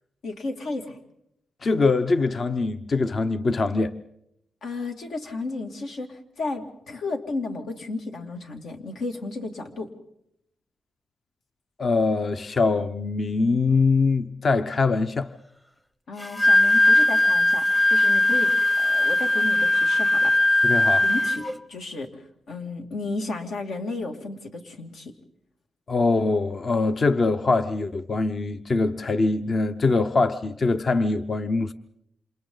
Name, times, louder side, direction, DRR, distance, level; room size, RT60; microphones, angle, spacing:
voice 1, 0.2-1.0 4.6-9.9 16.1-20.7 21.0-25.1, left 3 dB, 75° left, 2.7 m, -33 dB
voice 2, 1.6-3.9 11.8-15.3 20.6-21.0 25.9-31.7, left 3 dB, 45° left, 0.8 m, -23 dB
Wind instrument woodwind instrument, 16.2-21.5, left 1 dB, 10° left, 0.9 m, -19 dB
29.0 x 27.5 x 4.0 m
cardioid pair, 95°, 0 cm